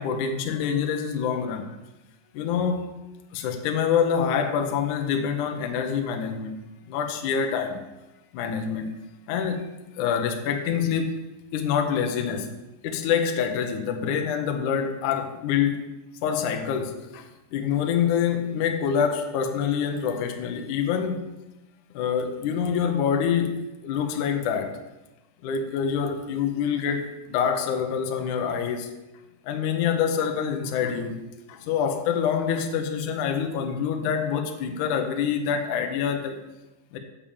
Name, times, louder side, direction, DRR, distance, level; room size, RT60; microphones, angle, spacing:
voice 1, 0.0-1.8 2.3-2.9 3.3-6.6 6.9-7.8 8.3-8.9 9.3-11.2 11.5-12.5 12.8-15.9 16.2-21.3 21.9-23.5 23.8-24.8 25.4-28.9 29.4-31.2 31.5-36.4 36.9-37.0, left 7 dB, 75° left, 5 dB, 1.8 m, -26 dB
8.5 x 7.1 x 7.3 m, 1.0 s
omnidirectional pair, 4.9 m